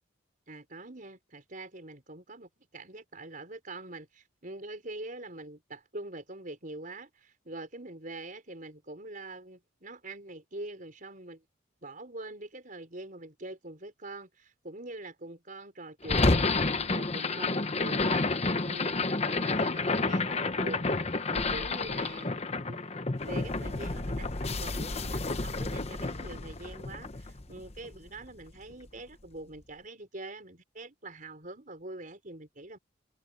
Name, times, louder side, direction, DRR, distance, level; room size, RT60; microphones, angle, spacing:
voice 1, 0.5-11.4 11.8-18.3 18.6-20.9 21.3-22.3 22.7-22.9 23.2-32.8, right 2 dB, 45° right, 5.2 m, -44 dB
sound 1, 16.0-28.3, left 3 dB, 30° left, 0.9 m, -30 dB
open air
head